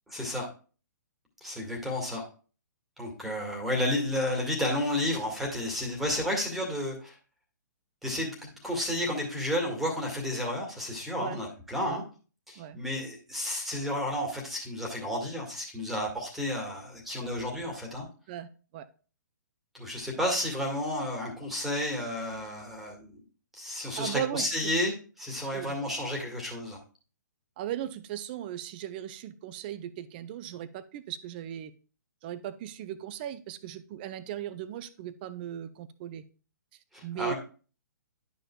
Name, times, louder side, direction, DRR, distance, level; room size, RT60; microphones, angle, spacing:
voice 1, 0.1-0.5 1.4-2.3 3.0-7.1 8.0-12.0 12.5-18.1 19.7-23.2 23.5-24.9 25.2-26.8 36.9-37.3, left 1 dB, ahead, -1 dB, 1.8 m, -31 dB
voice 2, 18.3-18.9 24.0-24.7 25.5-25.8 27.6-31.7 32.2-36.2 37.0-37.3, right 11 dB, 30° right, 14 dB, 0.5 m, -37 dB
11.0 x 5.4 x 2.3 m, 0.37 s
figure-of-eight pair, 125°, 11 cm